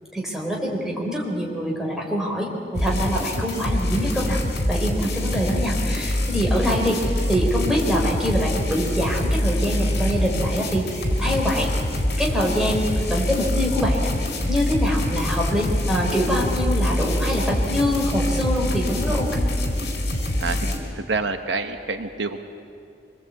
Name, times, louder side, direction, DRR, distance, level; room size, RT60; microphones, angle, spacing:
voice 1, 0.1-4.4 4.7-6.9 7.3-11.7 12.2-14.1 14.5-19.5, equal, 5° right, -2 dB, 4.3 m, -24 dB
sound 1, 2.7-20.8, left 1 dB, 60° left, 4.4 m, -24 dB
voice 2, 21.0-22.4, right 3 dB, 75° right, 7 dB, 1.1 m, -27 dB
25.5 x 21.5 x 8.4 m, 2.5 s
head